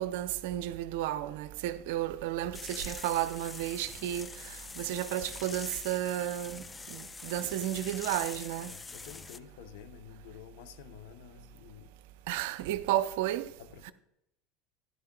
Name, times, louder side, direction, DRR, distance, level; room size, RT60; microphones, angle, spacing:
voice 1, 0.0-4.3 4.8-6.6 6.9-8.7 12.3-13.5 13.9-14.0, right 13 dB, 60° right, 0.5 m, -32 dB
sound 1, 2.5-9.4, left 4 dB, 15° left, 0.4 m, -44 dB
voice 2, 8.6-12.0 13.6-13.9, left 9 dB, 55° left, 0.8 m, -50 dB
16.0 x 10.5 x 2.2 m
figure-of-eight pair, 75°, 0 cm